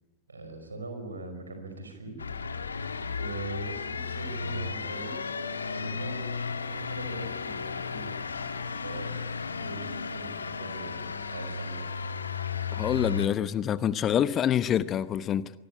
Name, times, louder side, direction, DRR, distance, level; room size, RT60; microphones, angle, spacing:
voice 1, 0.3-2.2 3.1-5.2 5.6-8.2 8.6-11.8, right 2 dB, 75° right, 5.5 m, -41 dB
sound 1, 2.2-13.3, left 5 dB, 75° left, 1.6 m, -34 dB
voice 2, 12.7-15.5, left 10 dB, 30° left, 0.9 m, -26 dB
25.5 x 20.0 x 9.7 m
figure-of-eight pair, 90°, 0 cm